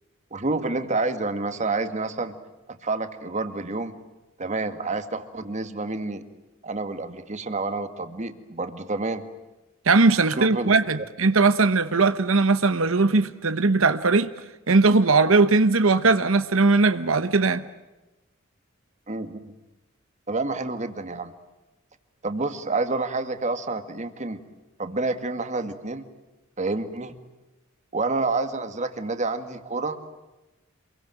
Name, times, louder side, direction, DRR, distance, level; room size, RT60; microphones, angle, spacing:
voice 1, 0.3-2.3 2.7-4.0 4.4-6.2 6.6-9.2 10.4-10.8 19.1-19.5 20.3-21.3 22.2-24.4 24.8-26.0 26.6-27.2 27.9-30.1, right 3 dB, 35° right, 2.0 m, -28 dB
voice 2, 9.9-14.3 14.7-17.6, right 3 dB, 85° right, 1.1 m, -19 dB
27.0 x 23.0 x 9.1 m
head